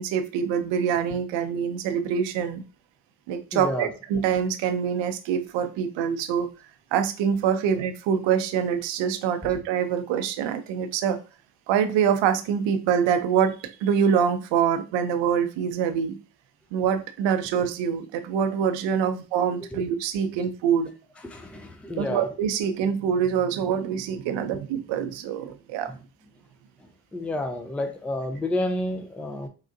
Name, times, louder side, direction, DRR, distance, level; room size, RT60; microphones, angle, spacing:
voice 1, 0.0-2.6 3.3-6.5 6.9-11.2 11.7-13.6 13.8-16.2 16.7-20.9 22.0-25.9, right 8 dB, 65° right, 9 dB, 0.6 m, -25 dB
voice 2, 3.5-3.9 19.7-19.8 21.2-22.3 25.9-26.0 26.8-29.5, left 1 dB, 5° left, 6 dB, 0.4 m, -30 dB
3.7 x 2.1 x 2.5 m, 0.34 s
hypercardioid pair, 60°, 48 cm